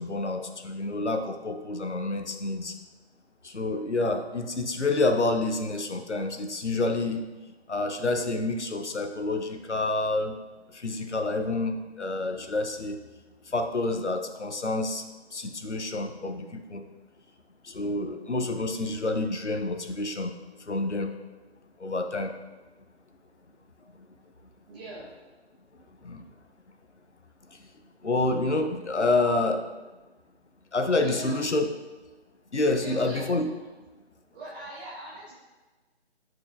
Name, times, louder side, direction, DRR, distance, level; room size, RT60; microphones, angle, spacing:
voice 1, 0.0-2.7 3.4-7.2 7.7-10.4 10.7-13.0 13.5-15.0 15.3-16.8 17.6-20.3 20.7-21.1 21.8-22.3 26.0-26.2 28.0-29.7 30.7-31.7 32.5-33.5, left 2 dB, 85° left, 5 dB, 0.8 m, -28 dB
voice 2, 24.7-25.1 31.0-31.4 32.7-33.2 34.3-35.3, right 2 dB, 10° right, -11 dB, 1.3 m, -41 dB
8.1 x 4.5 x 2.5 m, 1.2 s
figure-of-eight pair, 150°, 34 cm